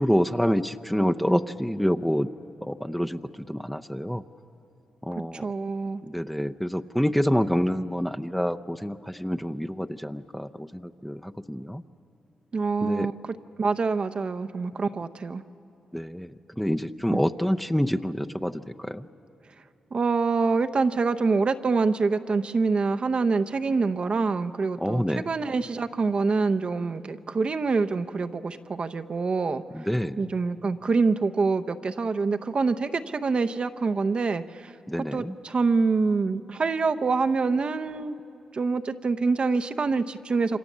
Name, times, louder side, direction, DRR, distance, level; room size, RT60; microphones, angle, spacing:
voice 1, 0.0-2.3 2.6-3.2 3.5-4.2 5.0-5.4 6.1-11.8 12.8-13.1 15.9-16.3 16.6-18.5 18.8-19.0 24.8-25.3 29.7-30.2 34.9-35.3, equal, 5° left, 8 dB, 0.7 m, -27 dB
voice 2, 5.3-6.0 12.5-15.4 17.1-17.2 19.9-29.6 30.2-34.7 35.1-38.2 38.5-40.6, right 4 dB, 50° right, 9 dB, 0.7 m, -26 dB
28.0 x 25.0 x 7.3 m, 2.9 s
cardioid pair, 70°, 2 cm